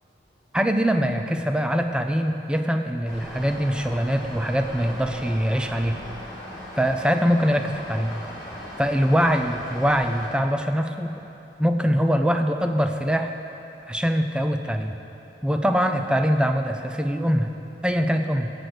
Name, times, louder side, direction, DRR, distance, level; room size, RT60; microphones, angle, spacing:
voice 1, 0.5-6.0 6.8-8.2 8.8-11.1 11.6-13.3 13.9-15.0 15.4-17.5 17.8-18.5, equal, 5° right, 5 dB, 0.4 m, -23 dB
sound 1, 3.0-10.3, equal, 20° left, 2.6 m, -38 dB
15.5 x 7.8 x 4.9 m, 3.0 s
head